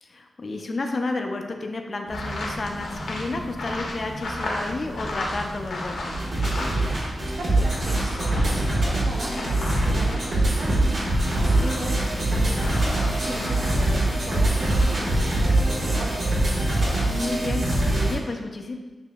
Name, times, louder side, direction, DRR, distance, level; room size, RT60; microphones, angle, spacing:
voice 1, 0.0-6.2 11.4-11.8 16.9-18.8, left 2 dB, 40° left, 3 dB, 0.4 m, -31 dB
sound 1, 2.1-7.1 7.4-16.0, left 1 dB, 75° left, 0.8 m, -36 dB
sound 2, 2.1-7.3, right 1 dB, 15° right, 0.5 m, -37 dB
sound 3, 6.1-18.1, right 1 dB, 80° right, 1.3 m, -23 dB
voice 2, 6.7-16.3, right 1 dB, 60° right, -2 dB, 0.8 m, -38 dB
6.9 x 2.7 x 2.3 m, 1.2 s
wide cardioid pair, 125°, 0 cm